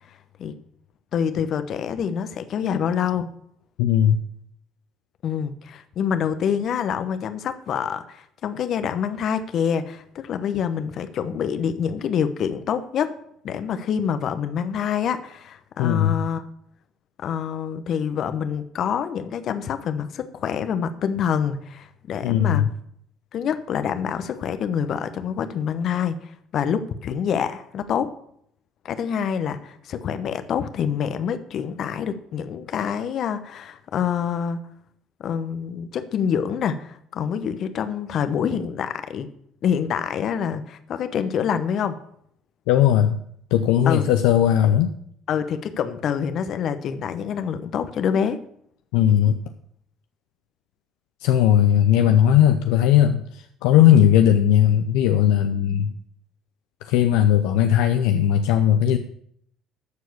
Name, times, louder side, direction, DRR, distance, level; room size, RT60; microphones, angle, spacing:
voice 1, 1.1-3.3 5.2-13.1 13.4-16.4 17.2-22.7 23.3-28.1 28.8-34.6 35.2-39.3 39.6-42.0 43.9-44.1 45.3-48.4, left 7 dB, 55° left, 11 dB, 0.9 m, -26 dB
voice 2, 3.8-4.2 15.8-16.2 22.2-22.7 42.7-43.2 43.5-44.9 48.9-49.4 51.2-55.9 56.8-59.0, left 10 dB, 75° left, 7 dB, 0.5 m, -18 dB
13.0 x 4.7 x 6.8 m, 0.69 s
hypercardioid pair, 60°, 0 cm